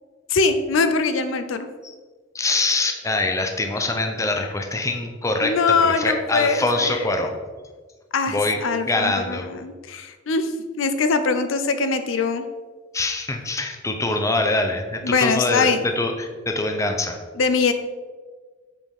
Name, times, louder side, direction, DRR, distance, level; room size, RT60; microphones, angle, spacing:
voice 1, 0.3-1.7 5.4-7.3 8.1-12.4 15.0-15.9 17.4-17.7, left 4 dB, 80° left, 9 dB, 0.5 m, -22 dB
voice 2, 2.3-7.3 8.3-8.6 8.9-9.5 12.9-17.2, left 2 dB, 15° left, 4 dB, 0.6 m, -24 dB
7.6 x 4.8 x 3.5 m, 1.4 s
head